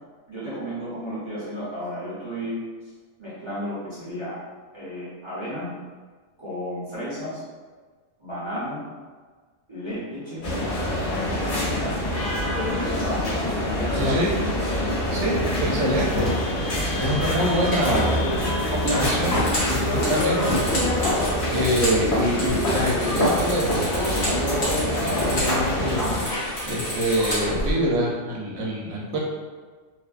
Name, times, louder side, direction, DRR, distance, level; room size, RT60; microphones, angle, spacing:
voice 1, 0.3-2.6 3.2-4.4 4.7-5.7 6.4-7.4 8.2-8.8 9.7-10.5 11.3-12.0 12.4-13.5 13.7-14.3 22.1-22.3, equal, 30° right, -11 dB, 0.6 m, -33 dB
sound 1, 10.4-26.2, left 1 dB, 50° left, 0.8 m, -25 dB
voice 2, 13.9-14.3 15.1-16.3 17.0-18.2 18.7-21.0 21.5-26.2 26.7-29.2, equal, 75° right, -3 dB, 0.9 m, -26 dB
sound 2, 14.5-27.7, left 1 dB, 65° left, 1.7 m, -32 dB
sound 3, 17.0-17.2 17.6-22.0 22.3-25.5 25.8-27.7, equal, 80° left, 1.3 m, -31 dB
3.1 x 2.0 x 2.4 m, 1.5 s
omnidirectional pair, 1.3 m